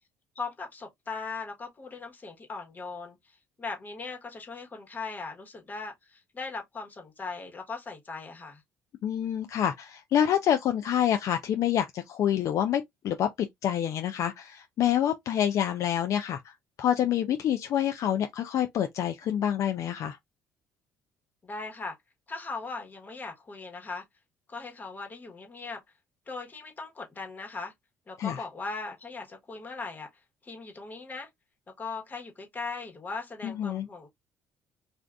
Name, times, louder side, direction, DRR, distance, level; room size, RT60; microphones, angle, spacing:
voice 1, 0.3-8.6 21.4-21.9 22.3-24.0 24.5-25.8 26.3-27.7 28.1-30.1 30.4-31.3 31.8-34.1, left 4 dB, 30° left, 1.2 m, -39 dB
voice 2, 9.0-20.2 28.2-28.4 33.4-33.9, left 10 dB, 60° left, 0.4 m, -27 dB
2.5 x 2.4 x 3.4 m
cardioid pair, 100°, 6 cm